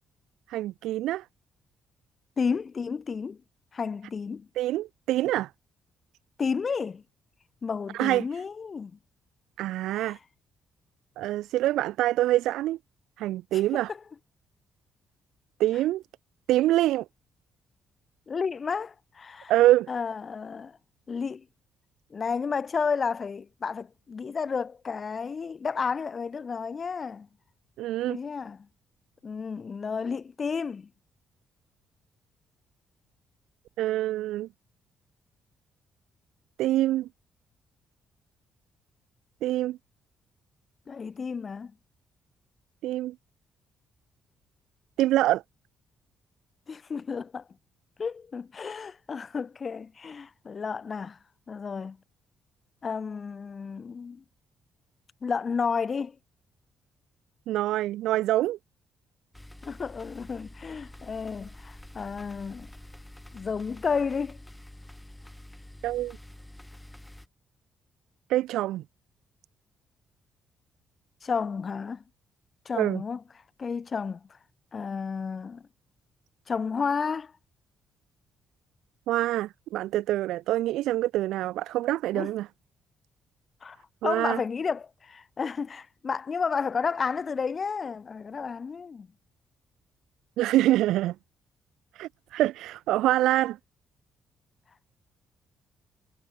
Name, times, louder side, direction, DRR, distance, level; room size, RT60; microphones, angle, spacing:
voice 1, 0.5-1.2 4.6-5.5 7.9-8.3 9.6-10.2 11.2-12.8 13.2-13.9 15.6-16.0 16.5-17.1 19.5-19.9 27.8-28.2 33.8-34.5 36.6-37.1 39.4-39.8 42.8-43.1 45.0-45.4 57.5-58.6 65.8-66.2 68.3-68.8 72.7-73.0 79.1-82.5 84.0-84.4 90.4-91.1 91.9-93.6, right 15 dB, 90° right, 0.4 m, -25 dB
voice 2, 2.4-3.4 3.7-4.5 6.4-7.0 7.6-9.0 9.9-10.2 13.5-14.0 18.3-19.5 19.9-20.8 21.1-21.5 22.1-27.3 28.1-28.7 29.2-30.9 40.9-41.7 46.7-47.5 48.0-51.2 51.5-52.0 52.8-54.2 55.2-56.2 59.6-62.7 63.3-64.4 71.2-72.0 72.7-73.2 73.6-74.4 74.7-75.7 76.5-77.3 82.1-82.3 83.6-83.8 84.0-89.1, left 5 dB, 40° left, 2.1 m, -32 dB
sound 1, 59.3-67.3, left 1 dB, 10° left, 1.2 m, -47 dB
cardioid pair, 90°, 0 cm